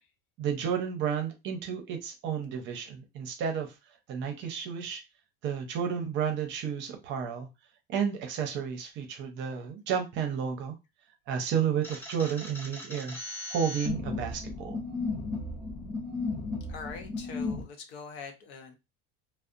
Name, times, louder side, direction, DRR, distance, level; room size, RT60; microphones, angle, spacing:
voice 1, 0.4-3.7 4.1-5.0 5.4-7.5 7.9-10.8 11.3-13.2 13.5-14.8, right 7 dB, 35° right, 0.6 m, -31 dB
sound 1, 11.8-17.6, left 3 dB, 5° left, 0.3 m, -35 dB
voice 2, 16.7-18.8, left 5 dB, 85° left, 0.8 m, -43 dB
2.7 x 2.0 x 2.5 m
cardioid pair, 165°, 31 cm